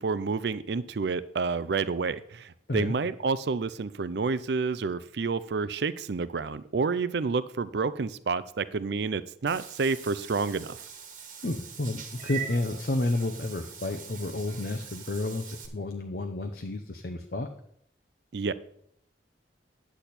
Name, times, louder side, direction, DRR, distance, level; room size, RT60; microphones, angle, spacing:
voice 1, 0.0-10.8 18.3-18.5, right 4 dB, 65° right, 16 dB, 0.5 m, -29 dB
Meow / Water / Bathtub (filling or washing), 9.5-15.7, right 8 dB, 45° right, 1.4 m, -43 dB
voice 2, 11.4-17.5, left 2 dB, 55° left, 5 dB, 0.7 m, -31 dB
10.0 x 8.3 x 4.3 m, 0.69 s
head